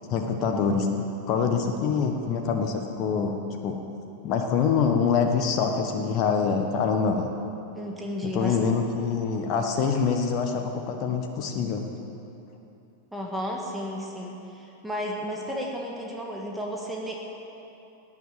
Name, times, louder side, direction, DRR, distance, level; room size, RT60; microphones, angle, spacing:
voice 1, 0.1-0.9 1.3-3.4 3.6-3.8 4.2-7.3 8.2-11.9, left 6 dB, 40° left, 4 dB, 1.4 m, -25 dB
voice 2, 7.7-8.7 13.1-17.2, equal, 5° right, -2 dB, 2.0 m, -33 dB
18.0 x 10.0 x 7.5 m, 2.9 s
figure-of-eight pair, 90°, 0 cm